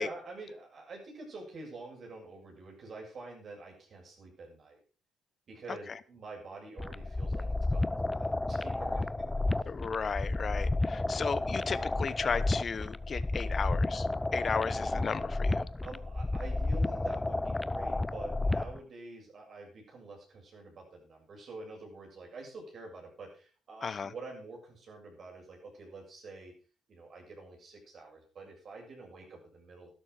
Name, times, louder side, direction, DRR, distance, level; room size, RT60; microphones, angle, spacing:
voice 1, 0.0-4.8 5.5-9.3 15.8-26.5 26.9-29.9, right 3 dB, 55° right, 0 dB, 6.8 m, -47 dB
sound 1, 6.8-18.8, left 2 dB, 15° left, 0.6 m, -32 dB
voice 2, 9.7-14.1 14.3-15.7 23.8-24.1, left 5 dB, 40° left, 17 dB, 1.0 m, -34 dB
12.0 x 12.0 x 5.0 m, 0.38 s
cardioid pair, 90°, 0 cm